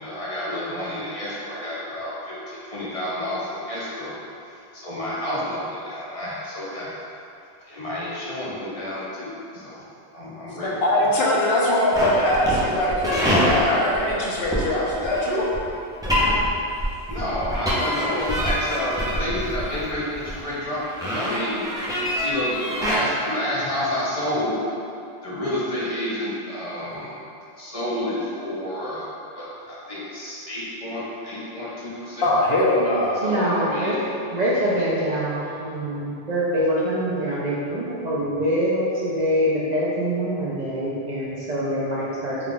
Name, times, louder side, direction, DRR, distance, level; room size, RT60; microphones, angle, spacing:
voice 1, 0.0-4.2 4.7-6.9 7.7-9.8 10.1-10.7 11.0-11.1 12.2-12.3 17.1-21.7 22.2-24.7 25.2-27.1 27.6-29.1 29.3-32.3 33.1-34.0, left 1 dB, 45° left, -8 dB, 0.5 m, -29 dB
voice 2, 10.6-15.4 32.2-33.1, left 1 dB, 70° left, -5 dB, 0.8 m, -21 dB
sound 1, 11.9-23.0, equal, 5° right, 0.4 m, -25 dB
voice 3, 33.2-42.5, equal, 55° right, -8 dB, 0.5 m, -24 dB
3.5 x 2.3 x 3.7 m, 2.7 s
omnidirectional pair, 1.1 m